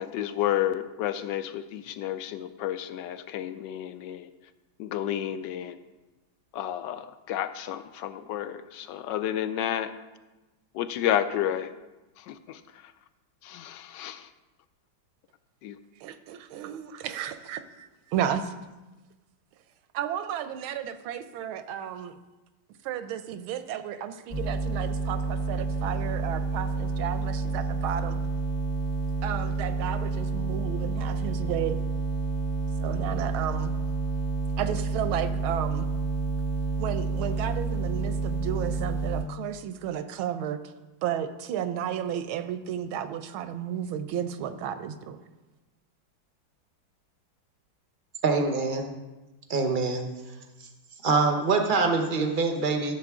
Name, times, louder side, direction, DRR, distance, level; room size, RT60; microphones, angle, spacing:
voice 1, 0.0-4.3 4.8-5.8 6.5-9.9 10.7-11.7 12.2-12.9 13.4-14.3 15.6-15.8, left 11 dB, 75° left, 12 dB, 1.1 m, -31 dB
voice 2, 16.0-18.5 19.9-22.2 22.8-28.2 29.2-31.8 32.8-33.7 34.6-35.9 36.8-40.7 41.0-45.2, right 9 dB, 85° right, 10 dB, 1.5 m, -33 dB
sound 1, 24.3-39.2, right 3 dB, 30° left, 1.3 m, -29 dB
voice 3, 48.2-48.9 49.5-50.1 51.0-52.9, right 4 dB, 50° right, 5 dB, 0.6 m, -24 dB
14.5 x 7.5 x 3.6 m, 1.1 s
omnidirectional pair, 2.2 m